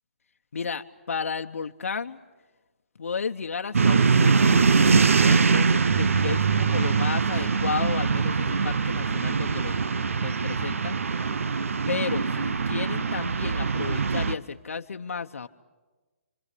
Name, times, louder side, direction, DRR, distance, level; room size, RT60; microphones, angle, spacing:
voice 1, 0.5-2.2 3.0-4.6 5.2-9.8 10.1-11.0 11.9-15.5, left 5 dB, 85° left, 6 dB, 1.0 m, -33 dB
sound 1, 3.7-14.4, right 5 dB, 75° right, 1.0 m, -23 dB
26.5 x 26.0 x 8.4 m, 1.2 s
hypercardioid pair, 180°, 7 cm